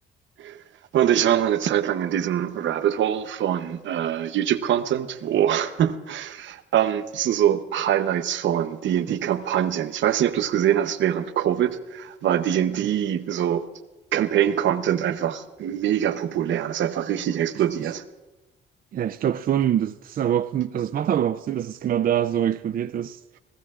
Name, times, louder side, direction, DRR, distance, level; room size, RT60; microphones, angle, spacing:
voice 1, 0.9-13.6 14.1-18.0, right 10 dB, 70° right, 0.9 m, -24 dB
voice 2, 18.9-23.2, right 10 dB, 45° right, 0.4 m, -24 dB
28.0 x 15.5 x 2.5 m
cardioid pair, 90°, 20 cm